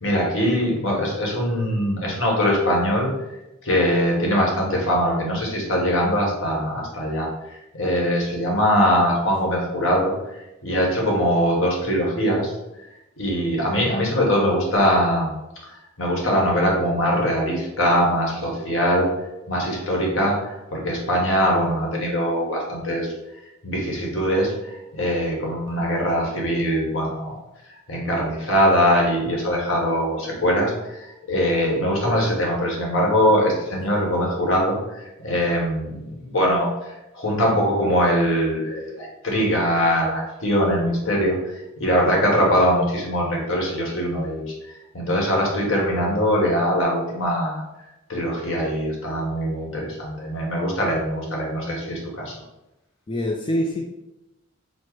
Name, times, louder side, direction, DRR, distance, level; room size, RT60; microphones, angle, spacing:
voice 1, 0.0-3.1 3.6-7.3 7.7-10.1 10.6-12.5 13.2-15.3 16.0-19.1 19.5-23.1 23.6-27.4 27.9-36.9 37.1-41.4 41.8-44.4 44.9-47.6 48.1-52.3, equal, 70° left, -1 dB, 1.2 m, -22 dB
voice 2, 53.1-53.8, equal, 25° left, 0 dB, 0.3 m, -25 dB
4.4 x 2.0 x 4.5 m, 0.95 s
head